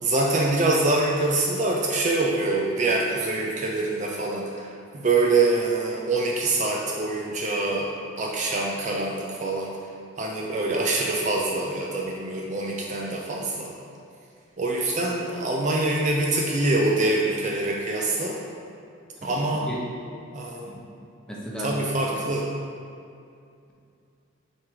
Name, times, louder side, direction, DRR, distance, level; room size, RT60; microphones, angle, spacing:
voice 1, 0.0-7.9 8.2-9.8 10.2-13.7 14.6-18.4 19.2-19.7 20.3-20.7 21.6-22.5, right 2 dB, 35° right, -1 dB, 0.5 m, -25 dB
voice 2, 19.2-19.8 20.7-20.8 21.3-21.8, equal, 5° left, -4 dB, 0.9 m, -35 dB
7.5 x 4.7 x 3.8 m, 2.5 s
head